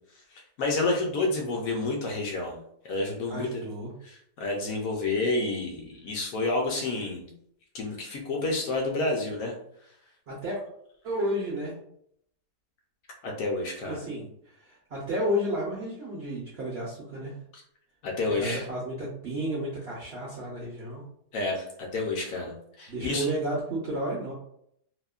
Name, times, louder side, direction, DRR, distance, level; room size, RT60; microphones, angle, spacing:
voice 1, 0.3-3.6 4.0-7.3 7.7-9.5 13.2-14.0 18.0-18.7 21.3-23.3, left 2 dB, 70° left, 0 dB, 0.9 m, -29 dB
voice 2, 3.3-3.9 10.3-10.6 11.0-11.8 13.9-17.3 18.3-21.0 22.9-24.3, equal, 70° right, -5 dB, 0.6 m, -32 dB
2.8 x 2.1 x 2.3 m, 0.71 s
omnidirectional pair, 1.7 m